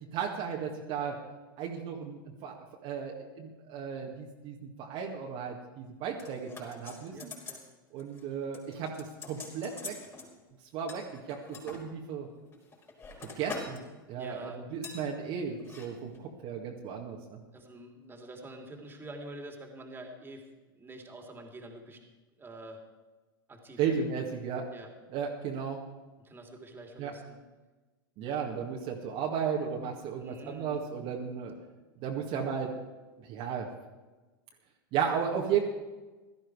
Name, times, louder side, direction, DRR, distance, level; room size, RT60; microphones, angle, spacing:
voice 1, 0.1-1.2 1.6-2.5 2.8-7.3 7.9-9.9 10.7-11.4 11.6-12.3 13.4-13.8 14.1-17.4 23.8-24.6 25.1-25.8 27.0-27.1 28.2-31.5 32.0-32.7 33.2-33.7 34.9-35.6, right 7 dB, 50° right, 0 dB, 1.9 m, -34 dB
sound 1, 6.2-7.7 8.0-8.2 8.5-10.3 10.9-11.8 12.4-13.8 14.1-14.3 14.8-15.0 15.6-15.9 16.1-16.2, left 4 dB, 20° left, 4.9 m, -44 dB
voice 2, 7.1-7.6 14.2-14.6 17.5-20.4 20.7-22.0 22.4-22.8 23.5-24.0 24.7-24.9 26.2-27.4 30.1-30.8, right 1 dB, 15° right, 2 dB, 2.8 m, -46 dB
16.5 x 13.0 x 4.8 m, 1.2 s
hypercardioid pair, 100°, 12 cm